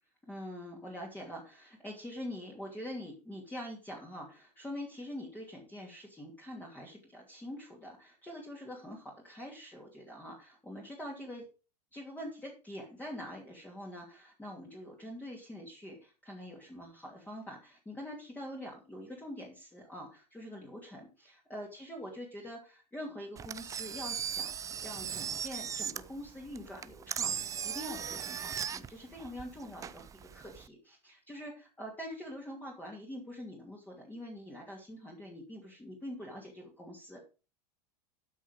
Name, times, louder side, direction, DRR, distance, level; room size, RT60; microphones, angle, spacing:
voice 1, 0.2-11.5 11.9-24.5 24.8-37.2, equal, 10° left, -2 dB, 2.7 m, -45 dB
Engine, 23.4-30.7, right 8 dB, 15° right, 0.5 m, -38 dB
12.5 x 6.3 x 5.4 m, 0.34 s
figure-of-eight pair, 90°, 21 cm